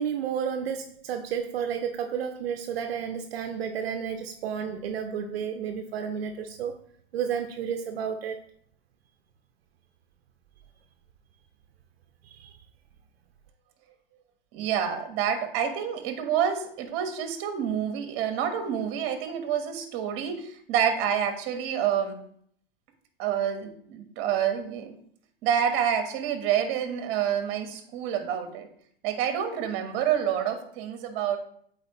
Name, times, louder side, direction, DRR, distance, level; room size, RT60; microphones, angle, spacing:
voice 1, 0.0-6.8 7.1-8.4 12.2-12.6, right 7 dB, 75° right, 6 dB, 0.6 m, -31 dB
voice 2, 14.5-22.2 23.2-24.9 25.4-28.7 29.0-31.4, right 8 dB, 40° right, 6 dB, 1.2 m, -28 dB
8.0 x 4.2 x 3.0 m, 0.63 s
hypercardioid pair, 120°, 30 cm